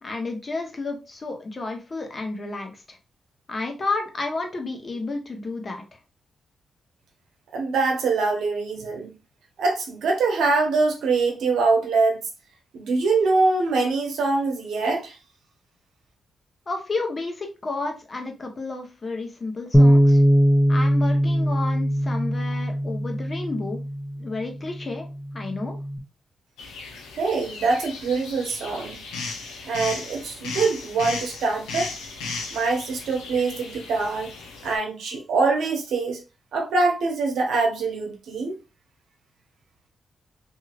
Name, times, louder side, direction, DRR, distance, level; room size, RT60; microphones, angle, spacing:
voice 1, 0.0-3.0 3.5-6.0 16.7-20.2 20.7-23.8 24.2-25.8, left 3 dB, 45° left, 0.9 m, -31 dB
voice 2, 7.5-9.1 9.6-12.2 12.7-15.2 27.2-29.0 29.6-31.9 32.5-34.3 34.6-36.2 36.5-38.6, right 3 dB, 75° right, 0.8 m, -24 dB
Bass guitar, 19.7-26.0, equal, 15° left, 0.8 m, -21 dB
sound 1, 26.6-34.8, left 4 dB, 85° left, 0.6 m, -36 dB
2.8 x 2.7 x 2.4 m
supercardioid pair, 45°, 0 cm